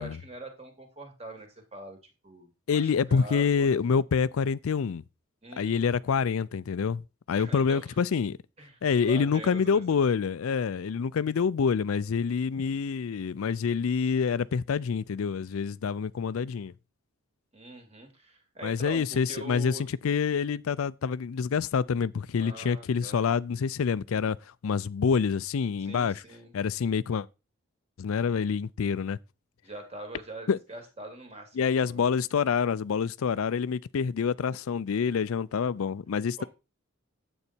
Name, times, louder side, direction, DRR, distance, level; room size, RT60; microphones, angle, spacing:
voice 1, 0.0-2.0 2.2-3.9 5.4-5.8 7.4-7.9 8.6-9.8 17.5-19.8 22.4-23.3 25.8-26.5 29.6-32.0 36.4-36.5, right 2 dB, 30° right, 2.6 m, -44 dB
voice 2, 2.7-5.0 5.6-7.0 7.3-8.4 8.8-16.7 18.6-24.4 24.6-26.2 26.5-27.3 28.0-29.2 30.5-30.6 31.6-36.4, left 6 dB, 75° left, 0.4 m, -27 dB
9.7 x 8.1 x 4.4 m
head